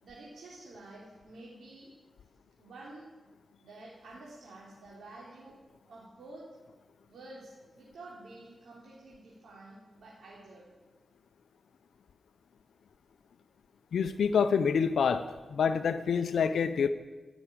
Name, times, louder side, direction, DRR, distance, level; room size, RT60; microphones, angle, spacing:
voice 1, 0.0-1.9 2.6-3.1 3.6-5.6 5.9-6.4 7.1-10.7, right 2 dB, 85° right, -6 dB, 3.3 m, -50 dB
voice 2, 13.9-15.3 15.5-16.9, left 6 dB, 80° left, 10 dB, 0.6 m, -27 dB
14.5 x 7.1 x 8.8 m, 1.2 s
cardioid pair, 50°, 0 cm